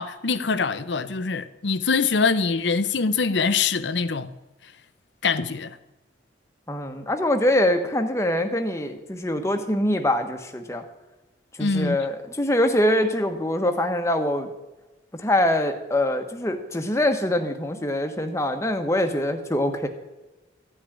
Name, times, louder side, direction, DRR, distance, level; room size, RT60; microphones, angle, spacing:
voice 1, 0.0-4.3 5.2-5.8 11.6-12.0, left 4 dB, 70° left, 0.7 m, -24 dB
voice 2, 6.7-10.8 11.6-14.5 15.2-19.9, left 1 dB, 15° left, 1.2 m, -24 dB
14.5 x 6.3 x 9.9 m
head